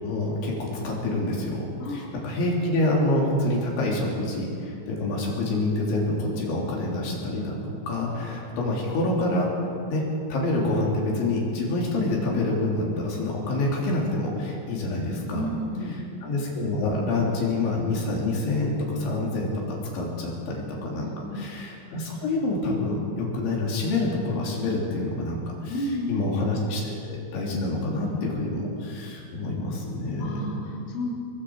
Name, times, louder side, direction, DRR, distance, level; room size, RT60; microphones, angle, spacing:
voice 1, 0.0-9.5 9.9-10.0 10.3-15.5 15.9-30.4, left 2 dB, 80° left, -3 dB, 5.8 m, -27 dB
voice 2, 1.8-2.1 15.3-16.0 21.0-21.5 25.7-26.3 30.2-31.1, left 1 dB, 35° left, -3 dB, 3.7 m, -32 dB
26.5 x 20.5 x 4.8 m, 2.6 s
omnidirectional pair, 5.2 m